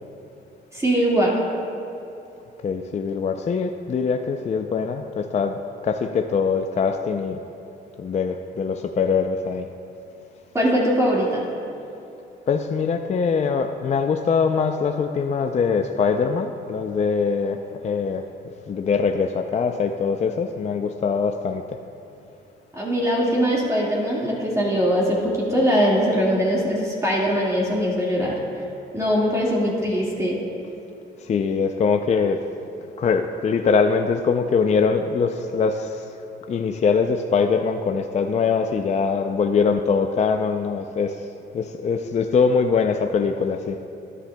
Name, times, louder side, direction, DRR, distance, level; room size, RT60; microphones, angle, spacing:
voice 1, 0.7-1.4 10.5-11.5 22.7-28.4 28.9-30.4, equal, 15° right, -5 dB, 1.8 m, -21 dB
voice 2, 2.6-5.6 5.8-7.4 8.0-9.7 12.5-18.2 18.7-21.8 31.2-32.4 33.0-36.1 36.5-41.3 41.5-43.8, left 5 dB, 35° left, 6 dB, 0.4 m, -22 dB
13.0 x 10.0 x 2.2 m, 2.7 s
cardioid pair, 90°, 20 cm